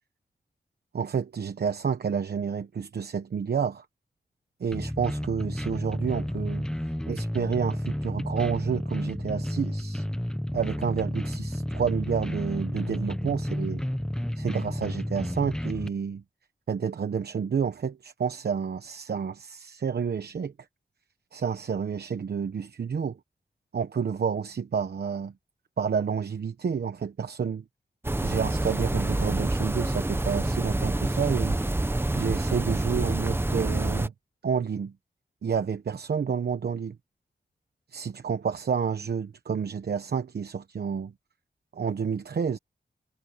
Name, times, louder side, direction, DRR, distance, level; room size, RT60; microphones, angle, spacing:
voice 1, 0.9-3.9 4.6-6.7 7.1-10.1 10.5-13.8 14.4-16.2 16.7-20.5 21.3-23.2 23.7-25.3 25.8-27.6 28.2-31.6 32.1-34.1 34.4-34.9 35.4-37.0 37.9-41.1 41.7-42.6, right 6 dB, 75° right, 1.0 m, -29 dB
sound 1, 4.7-15.9, equal, 5° left, 1.1 m, -31 dB
sound 2, 28.0-34.1, right 2 dB, 15° right, 0.9 m, -27 dB
wide cardioid pair, 110°, 17 cm